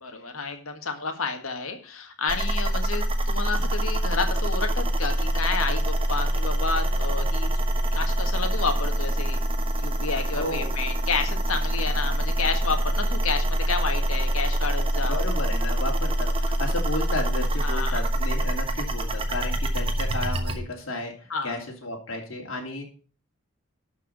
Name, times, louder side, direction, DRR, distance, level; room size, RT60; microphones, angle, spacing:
voice 1, 0.0-7.5 7.9-9.4 9.8-15.2 17.6-18.0 21.3-21.5, left 4 dB, 85° left, 6 dB, 1.7 m, -30 dB
sound 1, 2.3-20.6, right 1 dB, 25° right, 1.1 m, -25 dB
voice 2, 10.4-10.7 15.0-22.9, left 2 dB, 70° left, 0 dB, 2.8 m, -33 dB
12.0 x 4.9 x 6.4 m, 0.38 s
head